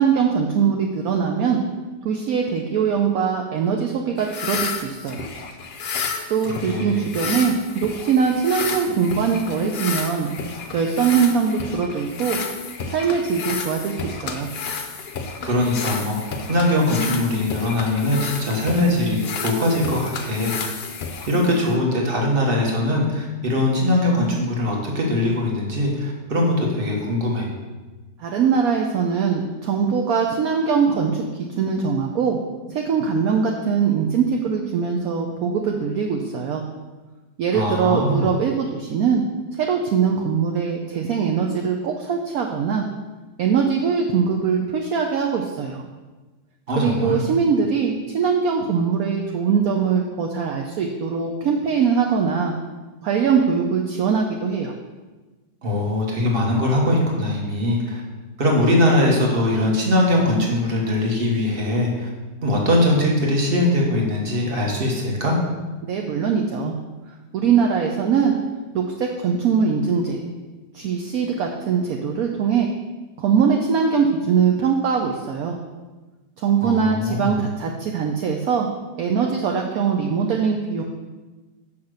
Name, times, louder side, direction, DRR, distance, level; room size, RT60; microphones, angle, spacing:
voice 1, 0.0-1.6 2.0-5.3 6.3-10.3 10.7-12.4 12.9-14.5 28.2-32.4 32.7-36.6 37.4-39.2 39.5-42.8 43.4-45.8 46.8-52.5 53.0-54.7 65.9-66.7 67.3-68.3 68.7-70.2 70.7-72.7 73.2-75.6 76.4-78.7 79.0-80.8, right 6 dB, 65° right, 2 dB, 1.1 m, -22 dB
sound 1, 4.2-21.8, left 5 dB, 55° left, 0.6 m, -31 dB
voice 2, 6.4-7.1 15.4-20.7 21.3-27.5 37.5-38.3 46.7-47.2 55.6-58.0 58.4-62.1 62.4-65.4 76.6-77.4, left 1 dB, 35° right, -1 dB, 1.5 m, -21 dB
6.1 x 5.8 x 6.4 m, 1.2 s
omnidirectional pair, 1.8 m